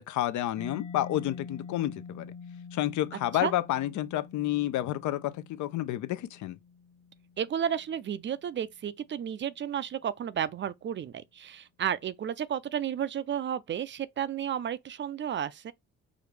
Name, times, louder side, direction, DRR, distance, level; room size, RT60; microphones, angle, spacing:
voice 1, 0.0-2.3 2.7-6.6, left 14 dB, 75° left, 0.5 m, -30 dB
Mallet percussion, 0.6-8.1, left 5 dB, 45° left, 1.1 m, -46 dB
voice 2, 7.4-15.7, right 9 dB, 40° right, 0.4 m, -32 dB
4.9 x 2.5 x 3.2 m
cardioid pair, 90°, 30 cm